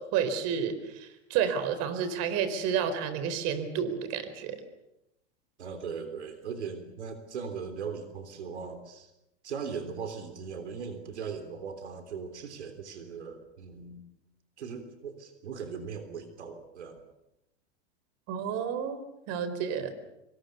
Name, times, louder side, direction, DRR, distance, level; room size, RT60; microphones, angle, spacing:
voice 1, 0.0-4.6 18.3-19.9, right 7 dB, 50° right, 12 dB, 4.2 m, -30 dB
voice 2, 5.6-9.1 9.4-14.0 14.6-17.0, right 6 dB, 90° right, 8 dB, 3.5 m, -39 dB
26.5 x 25.0 x 7.0 m, 0.87 s
hypercardioid pair, 115°, 33 cm